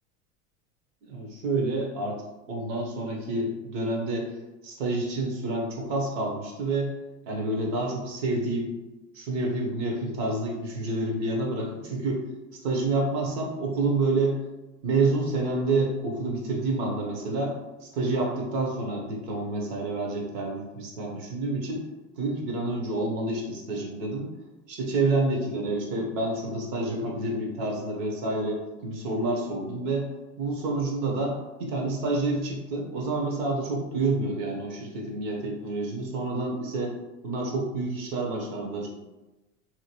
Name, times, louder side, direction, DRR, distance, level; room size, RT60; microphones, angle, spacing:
voice 1, 1.0-2.2 2.5-4.2 4.6-6.9 7.3-8.7 9.1-12.2 12.5-14.4 14.8-21.9 22.2-24.3 24.7-30.1 30.4-36.9 37.2-38.9, right 2 dB, 75° right, 0 dB, 1.0 m, -28 dB
2.9 x 2.3 x 2.9 m, 1.1 s
supercardioid pair, 105°, 38 cm